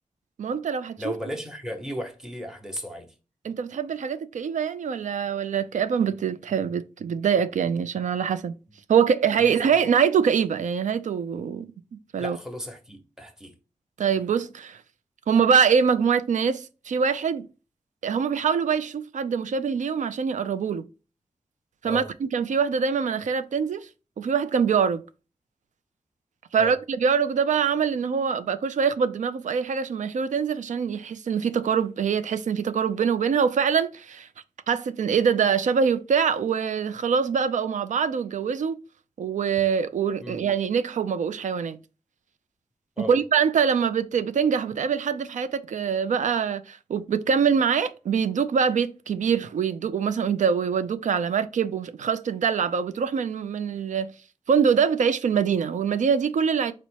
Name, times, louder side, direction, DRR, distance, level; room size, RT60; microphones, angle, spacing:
voice 1, 0.4-1.1 3.4-8.6 8.9-11.7 12.1-12.4 14.0-14.8 15.3-17.5 18.0-20.9 21.8-23.9 24.2-25.0 26.5-34.3 34.7-38.8 39.2-41.8 43.0-54.1 54.5-56.7, right 6 dB, 85° right, 0.4 m, -24 dB
voice 2, 1.0-3.1 9.4-9.9 12.2-13.5 21.8-22.1 26.6-26.8 40.2-40.4 43.0-43.2, equal, 5° right, 0.8 m, -35 dB
4.1 x 2.0 x 4.5 m
wide cardioid pair, 95°, 13 cm